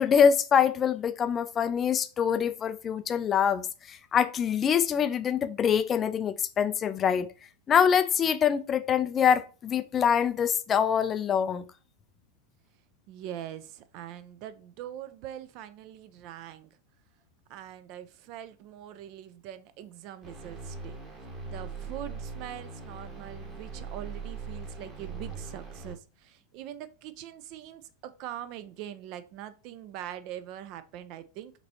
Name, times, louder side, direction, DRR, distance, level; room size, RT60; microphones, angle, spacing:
voice 1, 0.0-7.3 7.7-11.6, left 7 dB, 25° left, 0.3 m, -25 dB
voice 2, 13.1-16.7 17.5-21.0 21.5-31.5, right 11 dB, 40° right, 0.4 m, -43 dB
sound 1, 20.2-25.9, right 4 dB, 25° right, 1.4 m, -40 dB
5.1 x 3.1 x 2.7 m
figure-of-eight pair, 90°, 0 cm